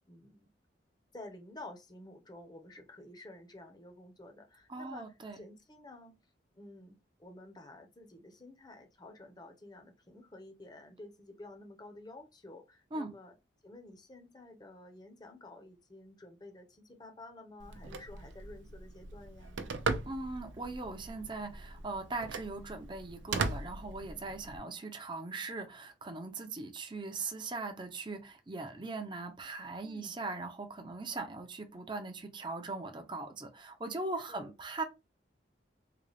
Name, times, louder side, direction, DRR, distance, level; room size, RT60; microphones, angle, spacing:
voice 1, 0.1-0.5 1.1-5.1 5.3-6.1 6.6-13.3 13.6-19.6 29.8-30.2 34.2-34.5, left 2 dB, 20° left, 0.7 m, -51 dB
voice 2, 4.7-5.4 12.9-13.1 20.1-34.8, right 3 dB, 25° right, 0.5 m, -40 dB
Telephone, 17.6-24.6, right 4 dB, 90° right, 0.5 m, -39 dB
3.8 x 2.3 x 3.3 m
head